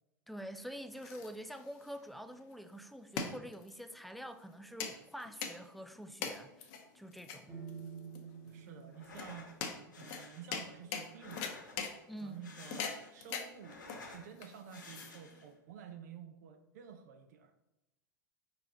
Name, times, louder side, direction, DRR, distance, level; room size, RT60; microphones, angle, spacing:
voice 1, 0.3-7.5 12.1-12.4, equal, ahead, 9 dB, 0.3 m, -46 dB
sound 1, 0.6-15.5, left 6 dB, 50° left, 0.8 m, -44 dB
sound 2, 7.5-11.4, right 6 dB, 20° right, 1.3 m, -51 dB
voice 2, 8.4-9.5 10.0-11.7 12.2-17.5, right 8 dB, 60° right, 6 dB, 0.5 m, -51 dB
sound 3, 8.9-9.5 9.9-10.4 11.1-11.9 12.3-13.2 13.5-14.3 14.7-15.5, left 3 dB, 80° left, 1.2 m, -52 dB
4.9 x 3.8 x 2.9 m, 0.92 s
figure-of-eight pair, 90°, 10 cm